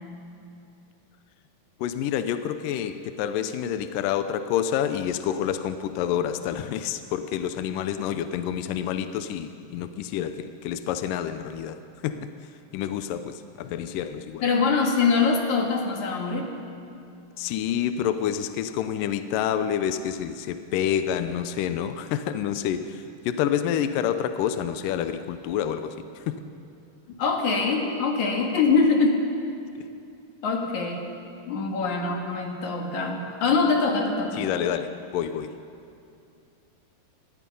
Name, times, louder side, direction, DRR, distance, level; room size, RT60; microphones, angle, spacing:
voice 1, 1.8-11.8 12.0-12.3 12.7-14.4 17.4-26.4 29.8-29.9 34.4-35.6, left 9 dB, 80° left, 10 dB, 2.3 m, -28 dB
voice 2, 14.4-16.5 27.2-29.2 30.4-31.0 31.5-34.4, left 4 dB, 60° left, 1 dB, 3.1 m, -23 dB
25.5 x 21.0 x 5.4 m, 2.6 s
omnidirectional pair, 4.0 m